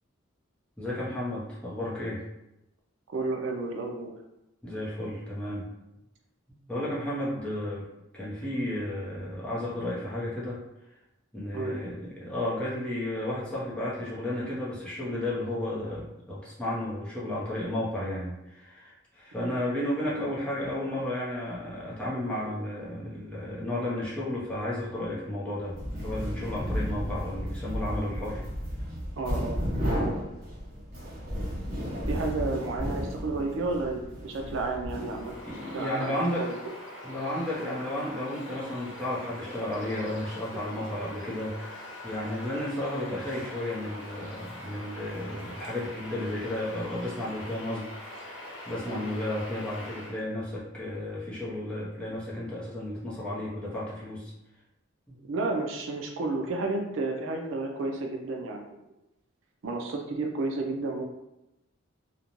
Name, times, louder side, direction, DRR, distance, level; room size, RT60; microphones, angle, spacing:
voice 1, 0.8-2.3 4.6-5.6 6.7-7.9 8.1-10.6 11.3-28.4 35.4-36.4 37.0-54.3 55.1-55.2, left 1 dB, 5° left, -8 dB, 0.6 m, -33 dB
voice 2, 3.1-4.1 11.5-11.8 19.4-19.6 29.2-29.6 30.1-30.3 32.1-35.4 35.7-36.5 37.6-37.7 45.3-45.5 48.8-49.1 55.2-58.8 59.6-61.0, right 3 dB, 70° right, 2 dB, 0.4 m, -32 dB
sound 1, 25.7-35.6, equal, 45° right, 0.9 m, -33 dB
Bird vocalization bird call bird song, 34.9-50.2, left 1 dB, 70° left, 0.8 m, -43 dB
2.5 x 2.1 x 2.9 m, 0.90 s
head